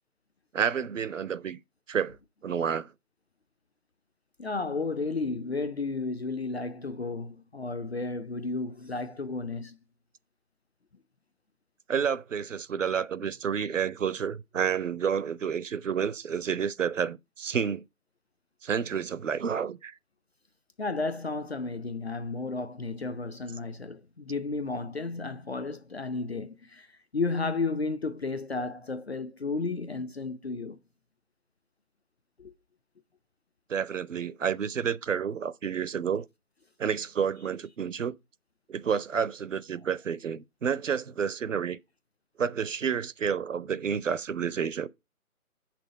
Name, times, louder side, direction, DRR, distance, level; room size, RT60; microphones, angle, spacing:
voice 1, 0.5-1.6 1.9-2.2 2.4-2.9 11.9-17.8 18.6-19.9 33.7-36.3 36.8-38.2 38.7-41.8 42.4-44.9, right 7 dB, 60° right, 0.6 m, -30 dB
voice 2, 4.4-9.8 20.8-30.8 32.4-32.5, left 3 dB, 45° left, 0.6 m, -33 dB
7.6 x 6.0 x 5.0 m
figure-of-eight pair, 165°, 44 cm